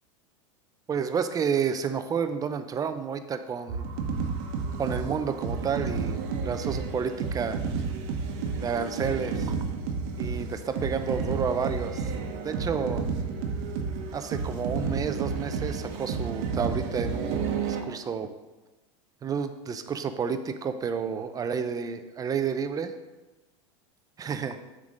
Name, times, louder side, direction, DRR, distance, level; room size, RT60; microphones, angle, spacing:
voice 1, 0.9-3.9 4.8-6.2 6.4-7.6 8.6-9.5 10.2-12.0 12.4-13.1 14.1-18.3 19.2-22.9 24.2-24.6, right 6 dB, 20° right, 9 dB, 0.6 m, -30 dB
sound 1, 3.7-17.8, right 5 dB, 60° right, 1.1 m, -31 dB
7.1 x 3.8 x 6.3 m, 1.1 s
hypercardioid pair, 105°, 16 cm